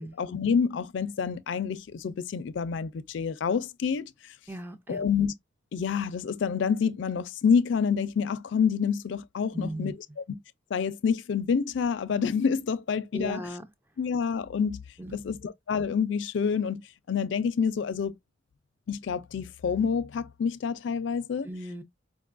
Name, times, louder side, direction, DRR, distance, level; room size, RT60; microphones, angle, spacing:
voice 1, 0.2-4.1 4.9-5.3 5.7-10.4 10.7-13.4 14.0-14.8 15.1-16.8 17.1-18.1 18.9-21.5, left 6 dB, 70° left, 0.4 m, -28 dB
voice 2, 4.5-5.0 9.5-9.9 13.1-13.6 15.0-15.2 21.4-21.8, right 1 dB, 10° right, 0.4 m, -37 dB
4.8 x 2.3 x 2.4 m
head